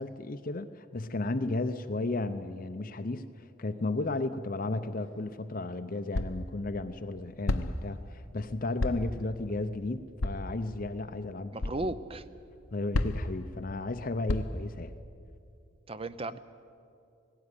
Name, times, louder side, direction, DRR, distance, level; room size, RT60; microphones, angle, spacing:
voice 1, 0.0-11.6 12.7-14.9, left 2 dB, 40° left, 8 dB, 0.6 m, -34 dB
sound 1, 5.0-5.1 6.1-6.5 7.5-7.9 8.8-9.2 10.2-10.5 11.6-11.8 12.9-13.4 14.3-14.7, left 2 dB, 75° left, 0.9 m, -31 dB
voice 2, 11.5-12.2 15.9-16.4, right 2 dB, 25° right, 14 dB, 0.6 m, -35 dB
18.0 x 17.0 x 9.8 m, 2.5 s
head